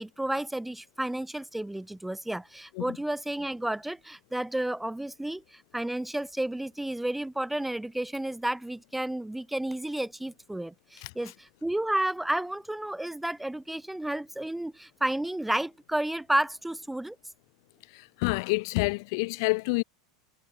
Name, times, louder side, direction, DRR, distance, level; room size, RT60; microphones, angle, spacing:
voice 1, 0.0-17.2, right 1 dB, 5° right, 0.4 m, -31 dB
voice 2, 18.2-19.8, left 27 dB, 60° left, 1.0 m, -27 dB
hypercardioid pair, 95°, 3 cm